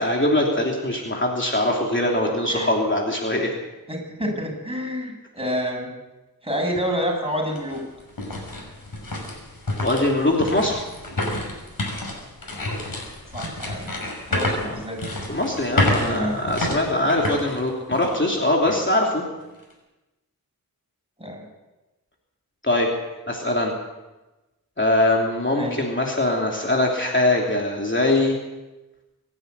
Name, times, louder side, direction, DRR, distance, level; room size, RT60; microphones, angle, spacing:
voice 1, 0.0-3.5 9.8-10.8 14.6-14.7 15.3-19.2 22.6-22.9 23.3-23.7 24.8-28.3, left 1 dB, 35° left, -1 dB, 3.1 m, -22 dB
voice 2, 2.2-2.7 3.9-5.9 6.4-7.8 13.3-13.9 14.3-15.0 15.7-16.4 21.2-21.5 25.5-25.8, equal, 15° right, 0 dB, 7.5 m, -28 dB
sound 1, 6.7-6.8 7.4-18.3 18.7-18.8 19.4-19.7, left 1 dB, 70° left, 6.4 m, -29 dB
24.5 x 11.5 x 9.7 m, 1.1 s
wide cardioid pair, 80°, 36 cm